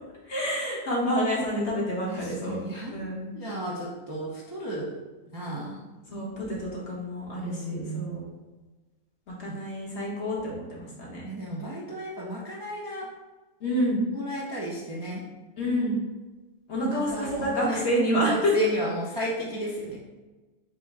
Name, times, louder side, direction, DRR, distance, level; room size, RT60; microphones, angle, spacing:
voice 1, 0.3-2.6 2.9-3.3 6.1-8.2 9.4-11.3 13.6-14.0 15.6-16.0 16.7-18.5, equal, 50° left, -4 dB, 1.4 m, -28 dB
voice 2, 2.1-3.0 3.3-5.0 5.3-5.8 7.3-8.2 9.4-9.6 11.2-13.1 14.1-15.2 16.8-17.8 18.3-20.0, equal, 30° right, -5 dB, 0.4 m, -33 dB
5.1 x 2.1 x 4.7 m, 1.2 s
omnidirectional pair, 1.5 m